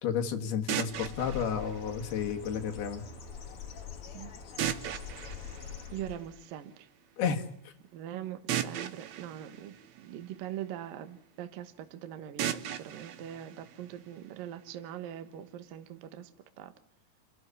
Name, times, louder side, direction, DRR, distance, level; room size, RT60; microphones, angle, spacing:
voice 1, 0.0-3.0 7.2-7.7, left 7 dB, 70° left, 4 dB, 3.8 m, -32 dB
sound 1, 0.7-2.7 4.6-6.6 8.5-10.7 12.4-14.4, right 10 dB, 80° right, 1.5 m, -37 dB
Bird, 0.8-6.4, left 7 dB, 45° left, 1.9 m, -44 dB
voice 2, 5.9-6.9 7.9-16.3 16.6-16.7, right 11 dB, 65° right, 10 dB, 2.7 m, -42 dB
29.5 x 12.5 x 9.8 m, 0.69 s
omnidirectional pair, 4.8 m